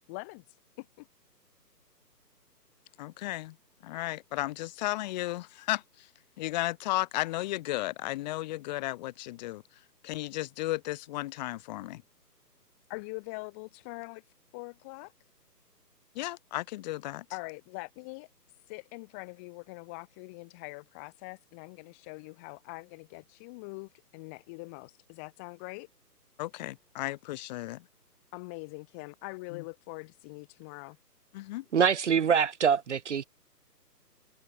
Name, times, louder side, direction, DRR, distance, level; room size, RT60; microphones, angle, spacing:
voice 1, 0.1-1.1 12.9-15.1 17.3-18.3 18.7-25.9 28.3-31.0, left 30 dB, 10° left, 0.9 m, -43 dB
voice 2, 3.0-3.6 3.8-6.1 6.4-9.6 10.0-12.0 16.1-17.2 26.4-27.8 29.5-29.6 31.3-31.6, left 17 dB, 25° left, 4.4 m, -34 dB
voice 3, 31.7-33.2, right 7 dB, 45° right, 1.3 m, -24 dB
figure-of-eight pair, 145°, 49 cm